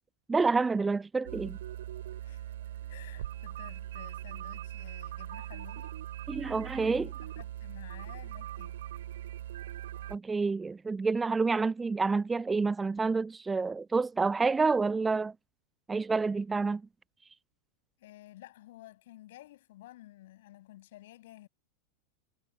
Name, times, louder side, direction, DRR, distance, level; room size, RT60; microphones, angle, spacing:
voice 1, 0.3-1.6 6.3-7.1 10.1-15.3 15.9-16.8, right 4 dB, 10° right, 0.3 m, -28 dB
sound 1, 1.2-10.2, right 12 dB, 60° right, 7.9 m, -41 dB
voice 2, 2.9-6.0 6.7-8.8 18.0-21.5, left 15 dB, 55° left, 8.0 m, -52 dB
figure-of-eight pair, 90°, 0 cm